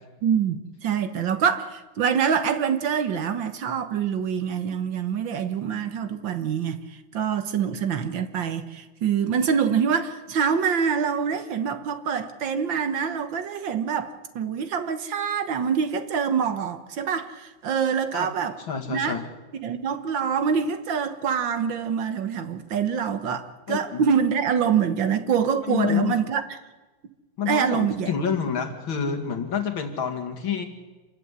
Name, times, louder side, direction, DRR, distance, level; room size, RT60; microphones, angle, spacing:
voice 1, 0.2-18.6 18.9-19.2 19.6-26.6 27.5-28.1, right 7 dB, 65° right, 1.9 m, -25 dB
voice 2, 18.7-19.2 23.7-24.0 25.7-26.2 27.4-30.6, left 7 dB, 70° left, 2.9 m, -28 dB
27.5 x 13.5 x 9.7 m
omnidirectional pair, 2.2 m